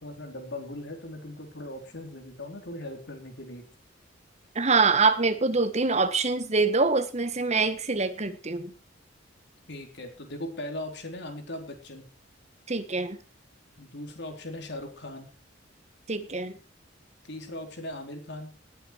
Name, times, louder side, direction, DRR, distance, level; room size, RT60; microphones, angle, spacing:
voice 1, 0.0-3.6 9.7-12.1 13.8-15.3 17.2-18.5, left 1 dB, 60° left, 4 dB, 3.9 m, -39 dB
voice 2, 4.5-8.7 12.7-13.2 16.1-16.5, right 4 dB, 35° right, 10 dB, 1.5 m, -24 dB
19.0 x 8.9 x 4.6 m, 0.34 s
head